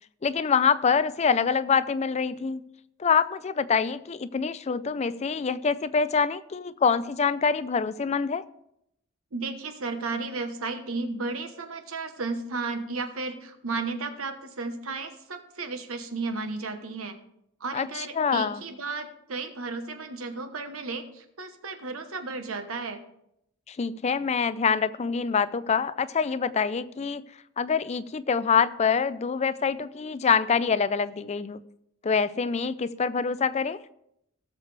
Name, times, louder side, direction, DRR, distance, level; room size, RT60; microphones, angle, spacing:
voice 1, 0.2-2.6 3.0-8.4 17.7-18.6 23.7-27.2 27.6-31.6 32.0-33.8, left 6 dB, 30° left, 14 dB, 0.4 m, -25 dB
voice 2, 9.3-17.2 17.6-23.0, right 3 dB, 85° right, 8 dB, 1.1 m, -34 dB
17.5 x 6.6 x 3.3 m, 0.78 s
head